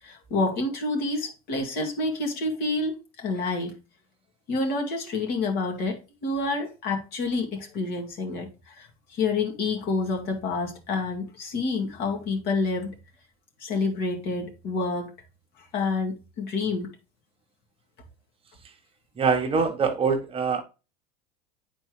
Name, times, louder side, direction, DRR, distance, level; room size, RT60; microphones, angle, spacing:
voice 1, 0.0-3.8 4.5-13.0 13.6-15.1 15.6-16.9, left 3 dB, 55° left, 2.3 m, -28 dB
voice 2, 19.2-20.6, right 5 dB, 30° right, 1.1 m, -24 dB
9.1 x 4.2 x 3.2 m
hypercardioid pair, 100°, 20 cm